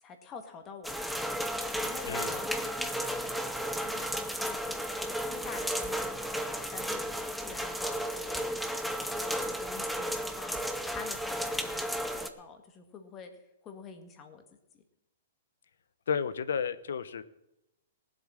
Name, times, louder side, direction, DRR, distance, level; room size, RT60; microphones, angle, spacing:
voice 1, 0.0-7.2 7.4-8.6 8.9-10.6 10.9-13.3 13.6-14.4, left 5 dB, 20° left, 6 dB, 1.8 m, -47 dB
sound 1, 0.8-12.3, equal, ahead, 0.7 m, -34 dB
voice 2, 2.1-2.4 16.1-17.2, left 7 dB, 80° left, 15 dB, 0.9 m, -32 dB
18.0 x 7.9 x 6.4 m, 0.88 s
hypercardioid pair, 160°, 0 cm